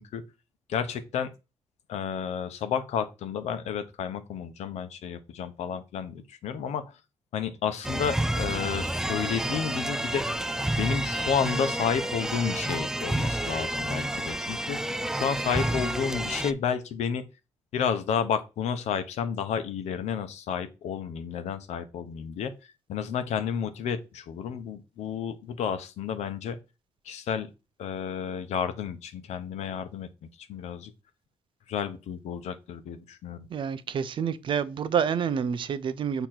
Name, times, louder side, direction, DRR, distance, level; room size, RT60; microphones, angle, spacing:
voice 1, 0.7-1.3 1.9-6.9 7.3-10.2 10.8-14.8 15.1-17.2 17.7-22.5 22.9-26.6 27.1-27.5 27.8-30.1 30.5-30.9 31.7-33.5, left 7 dB, 85° left, 1.0 m, -31 dB
sound 1, 7.8-16.5, right 1 dB, 5° right, 0.3 m, -30 dB
voice 2, 33.5-36.3, right 7 dB, 50° right, 0.6 m, -28 dB
6.9 x 3.0 x 5.9 m
cardioid pair, 150°, 11 cm